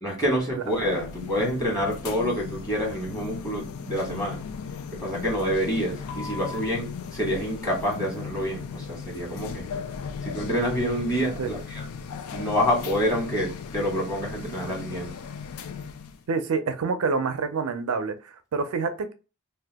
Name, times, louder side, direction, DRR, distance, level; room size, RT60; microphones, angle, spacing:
voice 1, 0.0-4.4 4.9-9.6 10.2-11.9 12.3-15.1, equal, 15° left, 1.4 m, -27 dB
sound 1, 0.6-16.2, left 6 dB, 75° left, 0.4 m, -37 dB
voice 2, 16.3-19.1, right 4 dB, 80° right, 0.5 m, -27 dB
2.7 x 2.2 x 3.4 m
head